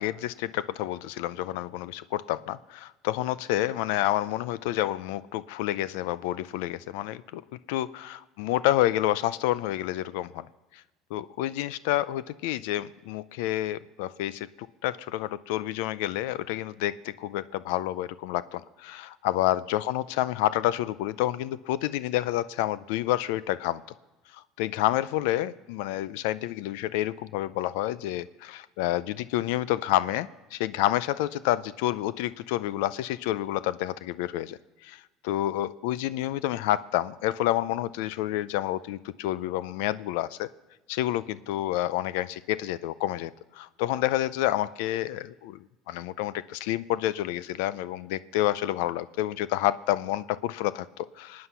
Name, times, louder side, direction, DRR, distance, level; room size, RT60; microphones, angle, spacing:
voice 1, 0.0-7.4 7.7-10.4 10.7-10.8 11.1-14.5 14.8-23.8 24.3-40.5 40.9-45.6 45.9-51.5, left 14 dB, 85° left, 17 dB, 0.4 m, -29 dB
23.5 x 9.6 x 5.6 m, 1.1 s
cardioid pair, 145°, 0 cm